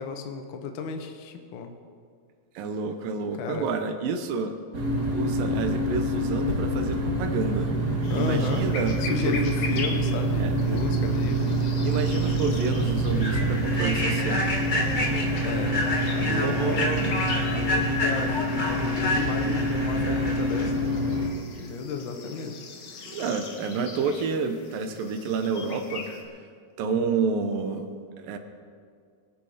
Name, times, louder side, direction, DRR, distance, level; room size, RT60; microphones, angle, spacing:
voice 1, 0.0-1.7 3.4-3.7 8.1-8.7 9.0-11.6 15.4-16.9 17.3-20.9 21.6-22.6, left 5 dB, 85° left, 5 dB, 1.1 m, -33 dB
voice 2, 2.6-4.5 5.1-7.7 8.1-9.4 10.4-10.8 11.8-14.6 16.3-17.2 23.1-26.1 26.8-27.9 28.2-28.4, right 5 dB, 80° right, 7 dB, 2.8 m, -29 dB
sound 1, 4.7-21.3, right 1 dB, 35° right, 2.1 m, -26 dB
sound 2, 8.0-26.2, left 4 dB, 60° left, 2.8 m, -41 dB
Human voice / Train, 11.8-12.0 12.4-12.6 13.1-20.7, left 1 dB, 25° left, 0.9 m, -30 dB
24.5 x 9.3 x 5.1 m, 2.1 s
omnidirectional pair, 4.0 m